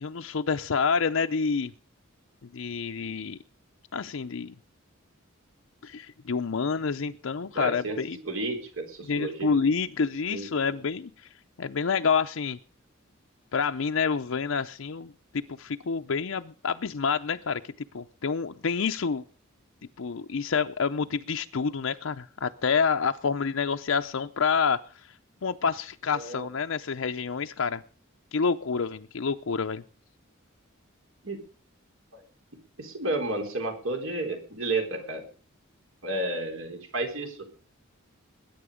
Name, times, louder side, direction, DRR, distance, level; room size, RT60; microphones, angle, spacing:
voice 1, 0.0-1.7 2.5-3.4 3.9-4.5 5.8-8.2 9.1-11.3 11.6-12.6 13.5-17.6 17.9-19.2 20.0-25.1 25.4-27.8 28.3-29.8, left 5 dB, 70° left, 7 dB, 0.6 m, -28 dB
voice 2, 7.5-8.0 8.2-9.5 10.3-10.5 26.1-26.5 31.2-31.4 32.1-32.2 32.8-35.2 36.0-37.5, right 2 dB, 70° right, 5 dB, 4.0 m, -31 dB
21.0 x 9.3 x 5.0 m, 0.40 s
head